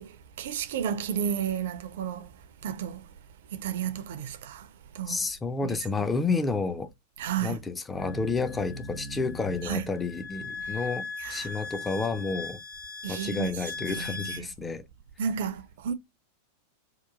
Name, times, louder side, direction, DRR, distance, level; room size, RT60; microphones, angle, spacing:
voice 1, 0.0-2.3 2.6-3.1 3.5-4.7 4.9-5.2 5.6-5.8 7.2-7.6 9.6-9.9 11.2-11.6 13.0-13.5 13.8-14.5 15.2-15.9, right 8 dB, 55° right, 0.4 m, -32 dB
voice 2, 5.1-6.9 7.4-12.6 13.1-14.8, left 4 dB, 15° left, 0.4 m, -30 dB
sound 1, 8.0-14.4, left 3 dB, 90° left, 0.7 m, -39 dB
2.8 x 2.3 x 2.3 m
figure-of-eight pair, 90°, 0 cm